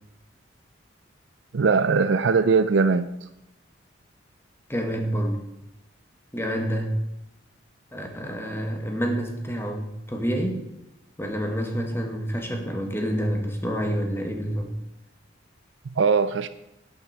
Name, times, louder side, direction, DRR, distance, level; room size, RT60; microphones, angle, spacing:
voice 1, 1.5-3.1 16.0-16.5, right 5 dB, 70° right, 12 dB, 0.5 m, -20 dB
voice 2, 4.7-5.4 6.3-6.9 7.9-10.6 11.2-14.7, equal, 10° left, 3 dB, 1.4 m, -28 dB
11.0 x 9.1 x 4.7 m, 0.90 s
head